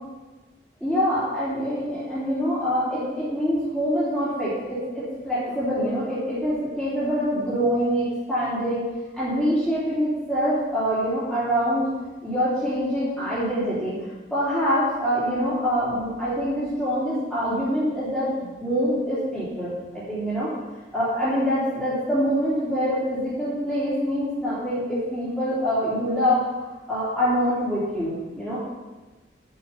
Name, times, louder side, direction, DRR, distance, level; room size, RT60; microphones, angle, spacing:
voice 1, 0.8-8.8 9.1-11.9 12.2-14.0 14.3-20.5 20.9-26.4 26.9-28.6, equal, ahead, -13 dB, 3.1 m, -25 dB
10.5 x 8.2 x 5.6 m, 1.2 s
head